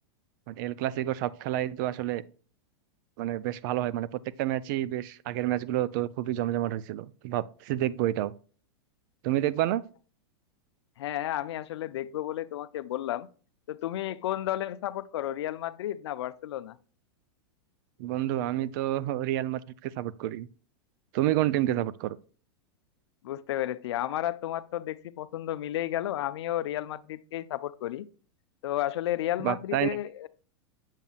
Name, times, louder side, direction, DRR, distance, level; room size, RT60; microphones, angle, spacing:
voice 1, 0.5-2.2 3.2-8.3 9.2-9.8 18.0-20.5 21.1-22.2 29.4-30.0, right 13 dB, 45° right, 0.4 m, -29 dB
voice 2, 11.0-13.3 13.7-16.8 23.2-28.1 28.6-30.3, left 13 dB, 75° left, 0.5 m, -32 dB
7.3 x 5.4 x 2.4 m
supercardioid pair, 145°, 14 cm